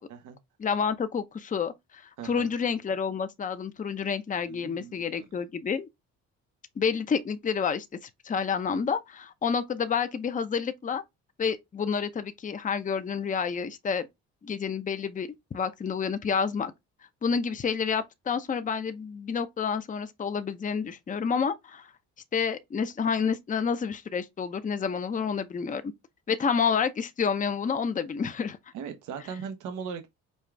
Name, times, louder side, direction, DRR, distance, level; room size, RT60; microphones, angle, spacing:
voice 1, 0.6-5.9 6.8-7.9 8.2-11.0 11.4-14.1 14.4-16.7 17.2-21.9 22.3-25.8 26.3-28.6, left 6 dB, 25° left, 0.6 m, -29 dB
voice 2, 2.2-2.5 4.5-5.3 28.7-30.1, right 7 dB, 85° right, 0.8 m, -39 dB
5.4 x 2.4 x 3.3 m
cardioid pair, 90°, 30 cm